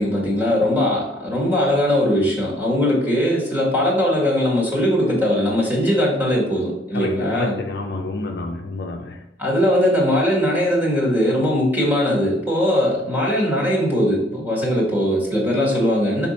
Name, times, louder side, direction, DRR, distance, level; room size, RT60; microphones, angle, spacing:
voice 1, 0.0-7.6 9.4-16.3, equal, 10° right, 1.9 m, -20 dB
voice 2, 6.9-9.2, left 2 dB, 60° left, 0.6 m, -29 dB
6.0 x 3.7 x 4.2 m
head